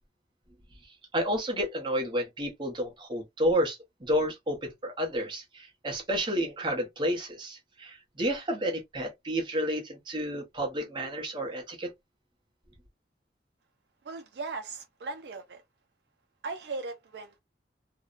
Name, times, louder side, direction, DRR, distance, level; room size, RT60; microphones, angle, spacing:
voice 1, 1.1-11.9, equal, 25° right, 0.8 m, -31 dB
voice 2, 14.0-15.6 16.4-17.4, right 3 dB, 65° right, 0.4 m, -38 dB
2.6 x 2.1 x 2.4 m
head